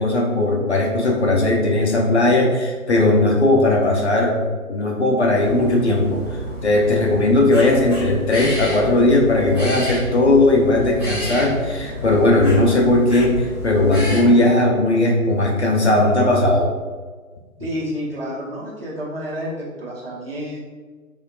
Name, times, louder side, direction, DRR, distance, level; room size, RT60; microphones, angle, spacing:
voice 1, 0.0-4.4 4.7-16.7 17.6-17.7, left 2 dB, 50° left, -1 dB, 0.4 m, -17 dB
sound 1, 5.4-14.2, equal, ahead, 0.9 m, -30 dB
voice 2, 17.6-20.6, equal, 40° right, -6 dB, 0.8 m, -29 dB
3.3 x 2.2 x 2.3 m, 1.4 s
figure-of-eight pair, 145°, 43 cm